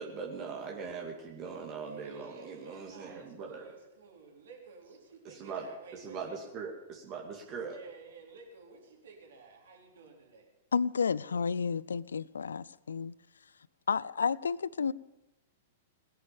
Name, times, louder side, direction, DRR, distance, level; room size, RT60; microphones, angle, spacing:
voice 1, 0.0-3.6 5.2-5.7 5.9-7.8, right 5 dB, 35° right, 2.4 m, -41 dB
voice 2, 1.8-6.4 7.6-10.5, right 4 dB, 65° right, 4.2 m, -52 dB
voice 3, 10.7-13.1 13.9-14.9, left 6 dB, 70° left, 0.4 m, -31 dB
19.5 x 10.5 x 7.1 m
figure-of-eight pair, 100°, 0 cm